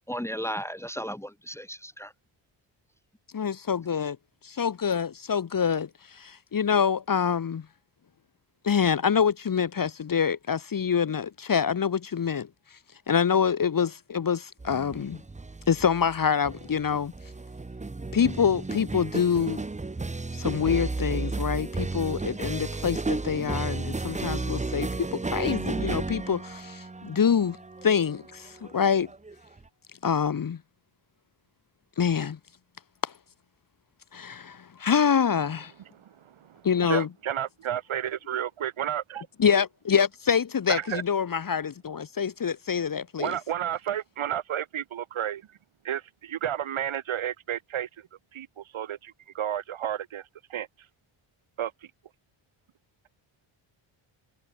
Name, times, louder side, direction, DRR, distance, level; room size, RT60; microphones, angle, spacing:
voice 1, 0.1-2.1, equal, 5° left, 1.9 m, -34 dB
voice 2, 3.3-4.2 4.4-7.6 8.6-12.5 13.1-15.2 15.7-17.1 18.1-19.6 20.4-27.6 27.8-29.1 30.0-30.6 32.0-32.4 33.0-33.1 34.1-35.7 36.6-37.1 39.4-43.3, left 7 dB, 40° left, 1.5 m, -26 dB
sound 1, 14.6-29.7, right 3 dB, 15° right, 1.1 m, -33 dB
voice 3, 35.9-39.3 40.7-41.0 43.2-45.4 45.8-47.9 48.3-50.7 51.6-51.7, right 10 dB, 70° right, 3.7 m, -32 dB
cardioid pair, 80°, 50 cm